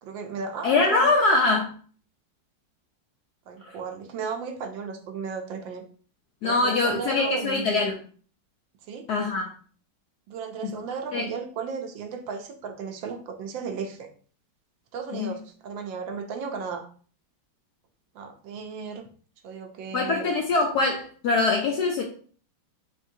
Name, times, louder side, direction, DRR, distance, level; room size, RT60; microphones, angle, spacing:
voice 1, 0.0-1.1 3.5-5.8 6.4-7.8 8.9-9.1 10.3-14.1 14.9-16.9 18.1-19.1 19.4-20.3, right 5 dB, 75° right, 5 dB, 1.3 m, -35 dB
voice 2, 0.6-1.7 3.6-3.7 6.4-8.0 9.1-9.5 10.6-10.7 11.1-11.2 15.1-15.3 19.9-22.0, left 3 dB, 75° left, 2 dB, 0.9 m, -23 dB
4.5 x 3.4 x 2.6 m, 0.43 s
omnidirectional pair, 2.2 m